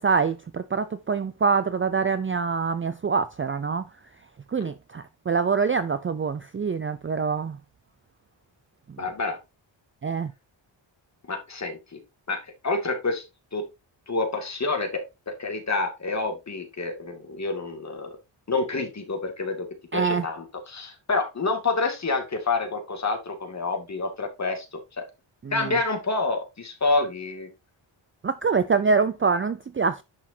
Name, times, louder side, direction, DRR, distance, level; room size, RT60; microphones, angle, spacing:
voice 1, 0.0-3.8 4.5-7.6 10.0-10.3 19.9-20.2 28.2-30.0, right 5 dB, 30° right, 0.4 m, -25 dB
voice 2, 9.0-9.4 11.3-12.0 12.3-13.2 13.5-13.6 14.1-18.2 18.5-19.7 19.9-25.0 25.5-27.5, left 3 dB, 35° left, 2.3 m, -28 dB
10.5 x 6.2 x 2.7 m
wide cardioid pair, 145°, 47 cm